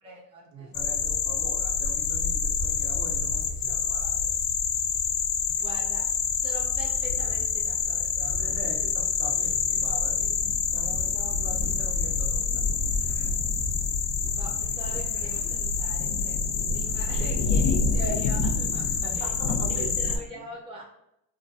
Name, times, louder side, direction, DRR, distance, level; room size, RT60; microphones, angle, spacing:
voice 1, 0.0-0.8 5.6-8.4 14.4-16.4 16.7-18.8 19.1-19.3 19.7-20.8, right 1 dB, 15° right, -2 dB, 0.5 m, -42 dB
voice 2, 0.5-4.3 8.2-12.7 18.7-20.4, right 2 dB, 65° right, 0 dB, 0.9 m, -42 dB
sound 1, 0.7-20.2, left 5 dB, 65° left, 0.5 m, -27 dB
2.5 x 2.2 x 2.6 m, 0.79 s
supercardioid pair, 95°, 45 cm